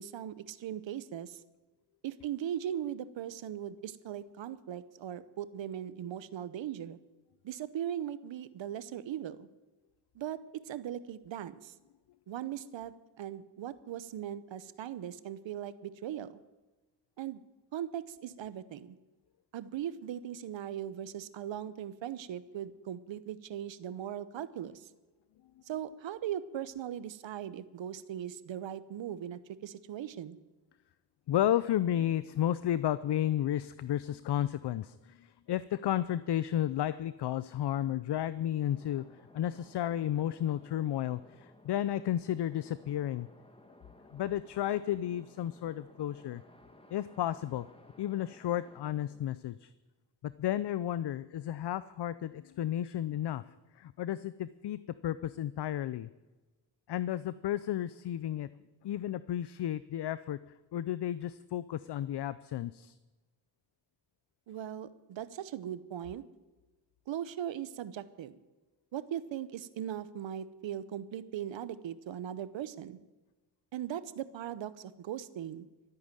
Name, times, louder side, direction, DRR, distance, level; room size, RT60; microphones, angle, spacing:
voice 1, 0.0-1.4 2.0-7.0 7.4-9.5 10.1-11.7 12.3-16.4 17.2-17.4 17.7-19.0 19.5-24.9 25.7-30.4 64.5-66.2 67.1-68.4 68.9-73.0 73.7-75.7, right 10 dB, 85° right, 15 dB, 0.9 m, -39 dB
voice 2, 31.3-39.0 39.3-43.3 44.1-46.4 46.9-47.7 48.0-49.7 50.2-53.4 53.8-56.1 56.9-58.5 58.8-60.4 60.7-62.9, left 11 dB, 65° left, 16 dB, 0.6 m, -32 dB
sound 1, 38.7-49.3, left 1 dB, 10° left, 1.8 m, -58 dB
13.5 x 9.7 x 9.0 m, 1.2 s
cardioid pair, 65°, 44 cm